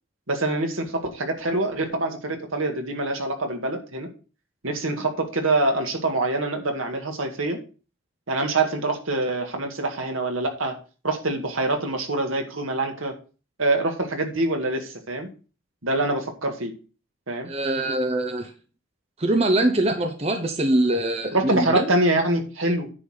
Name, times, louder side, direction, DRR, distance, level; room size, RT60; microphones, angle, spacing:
voice 1, 0.3-4.1 4.6-7.6 8.3-10.8 11.0-13.1 13.6-15.3 15.8-16.7 17.3-17.5 21.3-22.9, right 2 dB, 75° right, 4 dB, 2.0 m, -25 dB
voice 2, 17.5-18.5 19.2-21.9, right 1 dB, 30° right, 6 dB, 0.8 m, -23 dB
9.8 x 4.1 x 6.4 m, 0.35 s
head